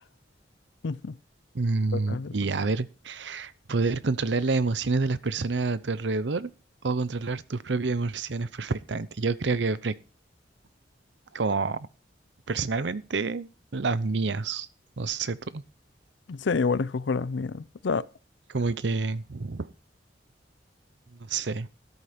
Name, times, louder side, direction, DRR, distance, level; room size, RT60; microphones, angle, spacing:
voice 1, 0.8-1.2 1.9-2.3 16.3-18.1, left 4 dB, 75° left, 0.5 m, -28 dB
voice 2, 1.5-6.5 6.8-10.0 11.3-11.9 12.5-14.7 15.0-15.6 18.5-19.7 21.2-21.7, right 3 dB, 75° right, 0.7 m, -28 dB
13.5 x 8.3 x 4.4 m
head